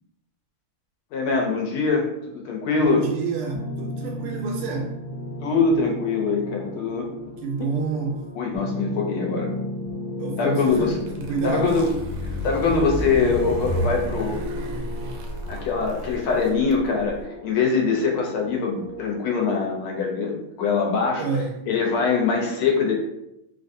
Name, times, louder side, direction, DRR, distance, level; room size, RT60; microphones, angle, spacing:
voice 1, 1.1-3.0 5.4-7.1 8.3-9.5 10.4-10.9 11.4-11.9 12.2-14.4 15.5-21.2 21.7-22.9, left 4 dB, 80° left, 0 dB, 1.6 m, -23 dB
voice 2, 2.8-5.0 7.4-8.2 10.2-10.9 11.2-11.8 21.2-21.6, right 4 dB, 90° right, 1 dB, 1.5 m, -28 dB
sound 1, 3.5-19.2, left 2 dB, 50° left, 0.7 m, -35 dB
sound 2, 10.7-17.2, right 1 dB, 75° right, 1.1 m, -31 dB
3.7 x 2.5 x 2.6 m, 0.85 s
omnidirectional pair, 2.3 m